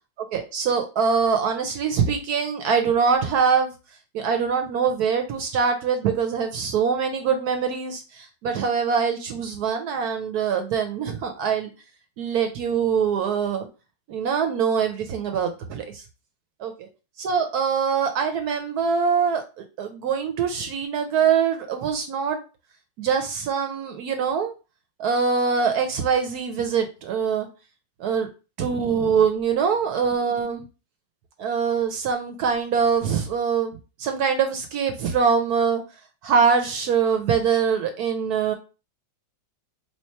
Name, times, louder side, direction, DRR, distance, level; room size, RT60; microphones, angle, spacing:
voice 1, 0.3-3.7 4.1-11.7 12.2-13.7 14.1-16.0 16.6-16.9 17.2-22.4 23.0-24.5 25.0-27.5 28.0-28.3 28.6-30.6 31.4-35.8 36.2-38.5, right 6 dB, 70° right, 6 dB, 1.0 m, -23 dB
3.1 x 3.1 x 4.3 m, 0.31 s
omnidirectional pair, 2.1 m